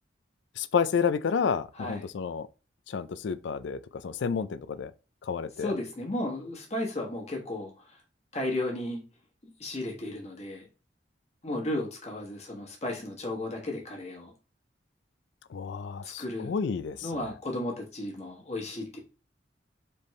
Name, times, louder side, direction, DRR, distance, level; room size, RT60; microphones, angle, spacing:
voice 1, 0.6-2.5 2.9-4.9 5.3-5.7 15.5-17.0, left 6 dB, 75° left, 0.4 m, -30 dB
voice 2, 1.7-2.1 5.6-8.0 8.3-9.0 9.6-10.7 11.4-14.3 16.0-16.5 17.0-19.0, left 1 dB, 35° left, 1.4 m, -34 dB
4.2 x 3.5 x 3.1 m
head